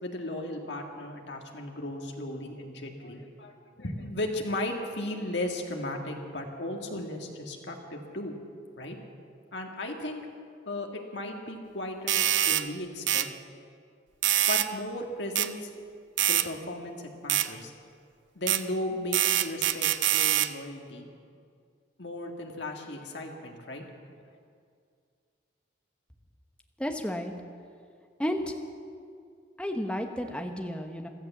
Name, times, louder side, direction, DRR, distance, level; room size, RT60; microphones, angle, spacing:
voice 1, 0.0-8.4 8.8-9.0 9.5-10.3 10.7-13.3 14.5-15.7 16.3-17.7 18.4-21.1 22.0-23.9, left 1 dB, 75° left, 2 dB, 1.9 m, -36 dB
sound 1, 12.1-12.6 13.1-13.3 14.2-14.7 15.4-15.5 16.2-16.5 17.3-17.5 18.5-18.6 19.1-20.5, right 13 dB, 80° right, 0.6 m, -24 dB
voice 2, 26.8-27.3 28.2-28.6 29.6-31.1, equal, 5° left, 4 dB, 1.0 m, -32 dB
15.0 x 13.0 x 7.2 m, 2.2 s
head